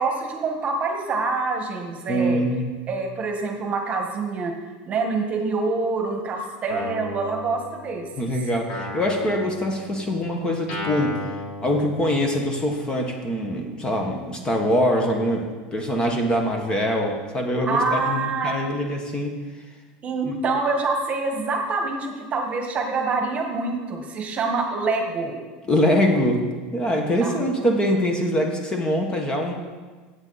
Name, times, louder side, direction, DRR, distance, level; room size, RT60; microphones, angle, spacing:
voice 1, 0.0-2.4 2.9-4.5 4.9-8.1 17.6-18.5 20.0-25.4 27.2-27.7, right 3 dB, 30° right, 3 dB, 1.4 m, -26 dB
voice 2, 2.1-2.8 8.2-11.3 11.6-19.4 20.3-20.4 25.7-26.4 26.7-29.5, equal, 20° left, 3 dB, 1.3 m, -23 dB
Guitar, 6.7-8.2 8.7-12.6, left 2 dB, 50° left, 3.0 m, -36 dB
14.0 x 8.2 x 4.1 m, 1.4 s
supercardioid pair, 140°, 5 cm